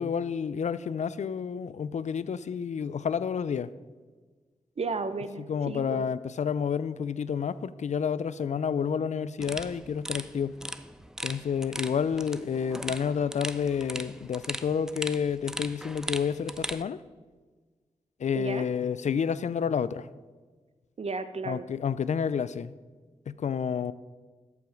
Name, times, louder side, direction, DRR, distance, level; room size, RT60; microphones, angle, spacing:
voice 1, 0.0-3.7 5.5-10.6 11.2-17.0 18.2-20.1 21.5-22.7 23.3-23.9, left 7 dB, 75° left, 17 dB, 0.4 m, -29 dB
voice 2, 4.8-6.0 18.3-18.7 21.0-21.7, right 4 dB, 55° right, 11 dB, 0.8 m, -34 dB
sound 1, 9.4-16.8, equal, 5° right, 0.6 m, -38 dB
13.5 x 5.9 x 5.1 m, 1.4 s
cardioid pair, 55°, 12 cm